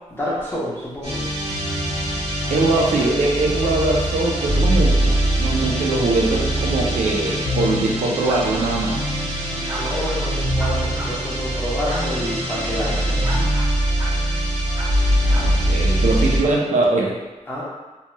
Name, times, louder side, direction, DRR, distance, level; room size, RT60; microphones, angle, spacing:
voice 1, 0.1-1.3 9.7-13.4 17.5-17.6, equal, 20° left, -7 dB, 0.9 m, -28 dB
sound 1, 1.0-16.5, right 1 dB, 60° right, 1.2 m, -22 dB
voice 2, 2.5-5.1 5.4-9.0 15.2-17.2, right 2 dB, 85° right, -2 dB, 0.5 m, -21 dB
sound 2, 8.3-8.7 9.7-10.2 10.6-11.1 11.9-12.0 13.2-13.7 14.0-14.2 14.7-14.9 15.3-15.4, right 1 dB, 20° right, 0.5 m, -33 dB
2.9 x 2.9 x 2.2 m, 1.1 s
wide cardioid pair, 110°, 12 cm